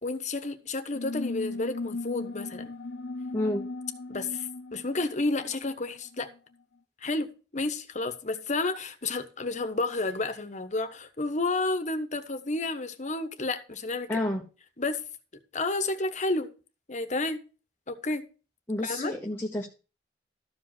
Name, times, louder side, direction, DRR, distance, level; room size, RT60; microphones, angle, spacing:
voice 1, 0.0-2.7 4.1-6.3 7.0-14.1 14.8-15.0 15.5-16.5 16.9-17.4 17.9-18.3 18.8-19.1, left 2 dB, 45° left, 1.2 m, -31 dB
sound 1, 0.9-6.2, left 3 dB, 75° left, 1.0 m, -37 dB
voice 2, 3.3-3.6 14.1-14.4 18.7-19.7, left 1 dB, 15° left, 1.0 m, -29 dB
13.0 x 5.2 x 5.8 m
head